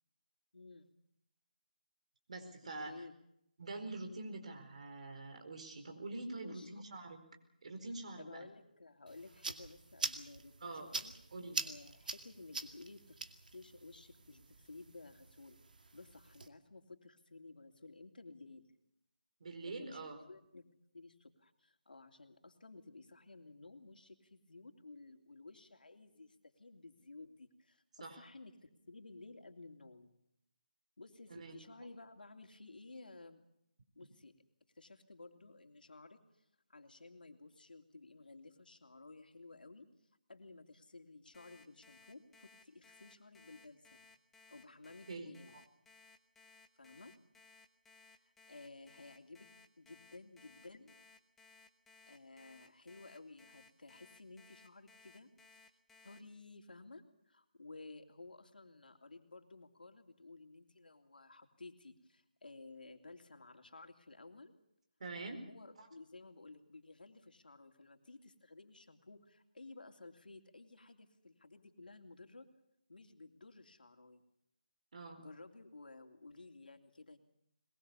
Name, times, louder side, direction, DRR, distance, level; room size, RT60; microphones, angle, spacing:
voice 1, 0.5-0.9 2.8-3.1 6.4-6.8 8.2-11.1 11.6-13.2 13.5-15.6 15.9-18.7 19.7-20.7 20.9-30.1 31.0-33.4 33.9-34.3 34.7-39.9 40.3-44.0 44.5-45.6 46.8-47.1 48.5-49.5 49.8-50.9 52.0-55.3 56.0-64.5 65.5-72.5 72.9-74.2 75.2-77.2, left 3 dB, 80° left, 6 dB, 3.0 m, -55 dB
voice 2, 2.3-2.9 3.6-7.2 7.6-8.4 10.6-10.9 11.3-11.6 19.4-20.2 28.0-28.2 31.3-31.6 45.1-45.6 65.0-65.4 65.8-65.9 74.9-75.2, right 2 dB, 50° right, 5 dB, 4.6 m, -45 dB
sound 1, 9.1-16.5, right 3 dB, 70° right, 2.3 m, -45 dB
Alarm, 41.3-56.2, left 4 dB, 5° left, 0.9 m, -62 dB
22.0 x 21.5 x 7.1 m, 0.76 s
figure-of-eight pair, 170°, 5 cm